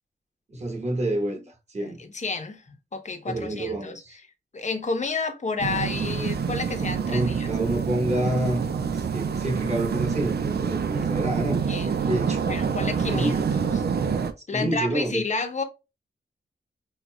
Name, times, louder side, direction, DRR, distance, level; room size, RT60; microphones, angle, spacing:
voice 1, 0.5-2.0 3.3-4.2 7.1-8.6 8.9-11.6 12.0-12.5 13.1-13.5 14.5-15.2, right 1 dB, 40° right, 1.8 m, -28 dB
voice 2, 1.8-2.6 2.9-3.9 4.5-7.5 11.7-12.1 12.5-13.8 14.5-15.6, left 4 dB, 40° left, 0.9 m, -30 dB
sound 1, 5.6-14.3, right 6 dB, 65° right, 0.6 m, -27 dB
5.7 x 2.5 x 2.2 m
cardioid pair, 75°, 18 cm